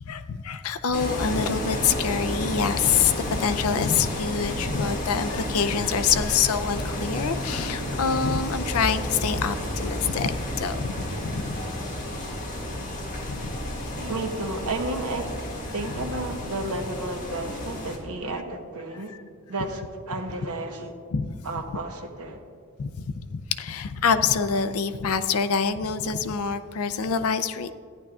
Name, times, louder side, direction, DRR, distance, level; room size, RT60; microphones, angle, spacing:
voice 1, 0.0-11.6 13.3-13.6 21.1-21.4 22.8-27.7, left 6 dB, 75° left, 12 dB, 0.5 m, -26 dB
sound 1, 0.9-18.0, left 1 dB, 35° left, 1.7 m, -32 dB
sound 2, 1.3-13.2, equal, 45° right, 2.7 m, -40 dB
voice 2, 13.6-19.2 19.5-20.9 21.4-22.4, right 2 dB, 80° right, 4 dB, 1.1 m, -32 dB
14.0 x 10.0 x 2.4 m, 2.2 s
head